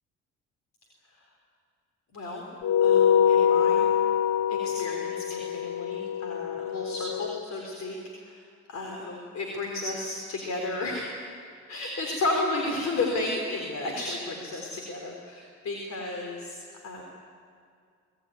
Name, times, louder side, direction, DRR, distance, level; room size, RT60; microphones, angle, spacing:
voice 1, 2.1-2.5 2.8-3.9 4.5-8.4 8.7-11.3 11.7-17.0, left 2 dB, 60° left, 1 dB, 4.1 m, -33 dB
sound 1, 2.6-7.4, left 8 dB, 90° left, 0.7 m, -24 dB
25.0 x 19.5 x 9.5 m, 2.2 s
cardioid pair, 90°, 30 cm